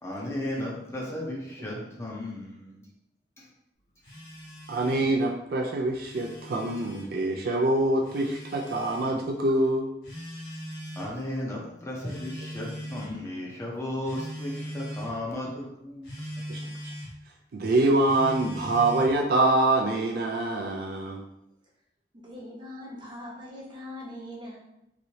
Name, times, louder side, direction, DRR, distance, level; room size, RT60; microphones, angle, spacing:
voice 1, 0.0-2.9 3.4-3.5 11.0-16.3, left 1 dB, 15° left, -4 dB, 0.6 m, -35 dB
Telephone, 4.0-5.1 5.9-7.1 8.0-9.1 10.0-11.1 12.0-13.2 14.0-15.1 16.0-17.1 18.0-19.2, equal, 70° left, 1.2 m, -39 dB
voice 2, 4.7-9.9 16.5-16.9 17.5-21.2, right 2 dB, 60° right, 1 dB, 0.4 m, -25 dB
voice 3, 22.1-24.6, left 1 dB, 25° right, -4 dB, 0.9 m, -41 dB
3.0 x 2.6 x 2.7 m, 0.83 s
head